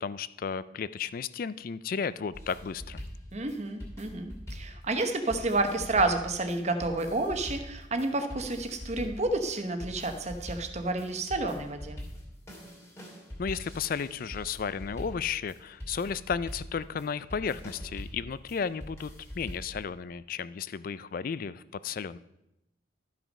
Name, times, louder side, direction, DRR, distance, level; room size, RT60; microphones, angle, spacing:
voice 1, 0.0-3.0 13.4-19.1 19.3-22.2, left 6 dB, 45° left, 17 dB, 0.3 m, -33 dB
sound 1, 2.3-19.8, equal, 15° left, 2.6 m, -43 dB
voice 2, 3.3-12.0, right 2 dB, 35° right, 6 dB, 1.0 m, -30 dB
12.5 x 6.0 x 5.4 m, 0.86 s
head